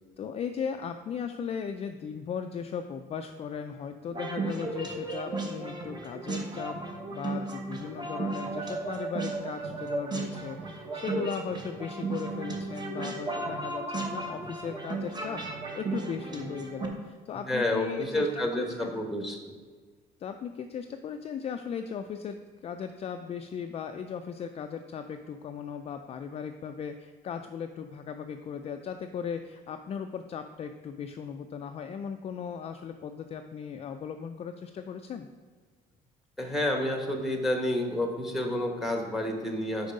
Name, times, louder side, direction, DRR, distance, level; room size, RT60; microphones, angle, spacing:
voice 1, 0.2-6.8 7.1-15.4 15.7-19.0 20.2-35.3, left 7 dB, 35° left, 6 dB, 0.3 m, -37 dB
sound 1, 4.1-16.9, right 3 dB, 25° right, 1.0 m, -35 dB
voice 2, 17.3-19.5 36.4-39.9, left 1 dB, ahead, 2 dB, 1.0 m, -29 dB
5.2 x 4.7 x 5.2 m, 1.5 s
cardioid pair, 110°, 17 cm